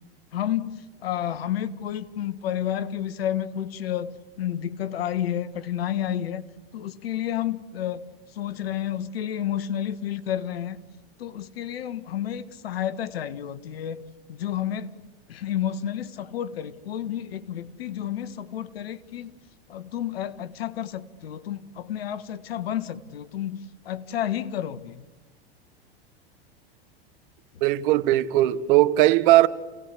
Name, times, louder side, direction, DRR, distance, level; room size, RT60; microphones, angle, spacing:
voice 1, 0.3-6.4 6.7-8.0 8.3-10.8 11.2-14.9 15.3-19.3 19.7-25.0, left 10 dB, 75° left, 1.5 m, -30 dB
voice 2, 27.6-29.5, right 15 dB, 60° right, 1.3 m, -18 dB
29.5 x 17.5 x 8.4 m
hypercardioid pair, 100°, 30 cm